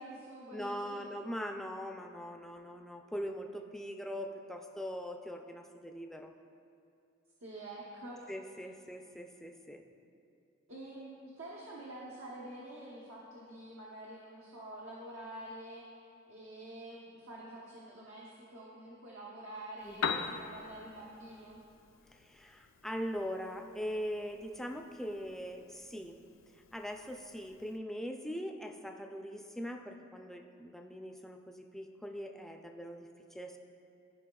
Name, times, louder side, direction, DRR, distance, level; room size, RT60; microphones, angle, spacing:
voice 1, 0.0-1.0 7.4-8.2 10.7-15.9 16.3-21.6, right 1 dB, 85° right, -5 dB, 1.0 m, -47 dB
voice 2, 0.5-6.3 8.3-9.8 19.8-20.3 22.1-26.2 26.7-33.6, equal, ahead, 3 dB, 0.4 m, -41 dB
Piano, 19.8-27.8, left 6 dB, 70° left, 0.4 m, -44 dB
14.5 x 5.2 x 2.3 m, 2.6 s
head